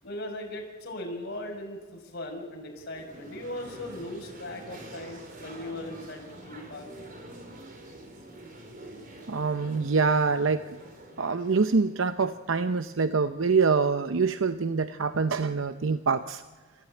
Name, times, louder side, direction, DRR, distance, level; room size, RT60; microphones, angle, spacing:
voice 1, 0.0-6.9, left 1 dB, 55° left, 1 dB, 6.4 m, -38 dB
sound 1, 2.8-12.8, right 1 dB, 45° right, 4.6 m, -47 dB
voice 2, 9.3-10.6 11.2-16.4, right 4 dB, 80° right, 10 dB, 0.7 m, -25 dB
28.5 x 15.0 x 9.1 m, 1.3 s
head